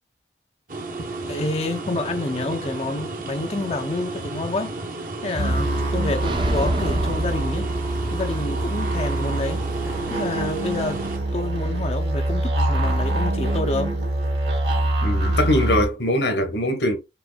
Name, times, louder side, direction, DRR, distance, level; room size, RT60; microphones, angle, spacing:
sound 1, 0.7-11.2, right 2 dB, 50° right, 1.0 m, -33 dB
voice 1, 1.3-7.7 8.1-9.7 10.1-11.0 11.3-14.0, left 2 dB, 35° left, 0.5 m, -28 dB
sound 2, 5.4-15.8, right 1 dB, 75° right, 2.2 m, -24 dB
sound 3, 6.2-8.4, right 1 dB, 30° right, 0.7 m, -28 dB
voice 2, 15.0-17.0, left 1 dB, 80° left, 1.3 m, -22 dB
6.1 x 3.6 x 2.2 m
head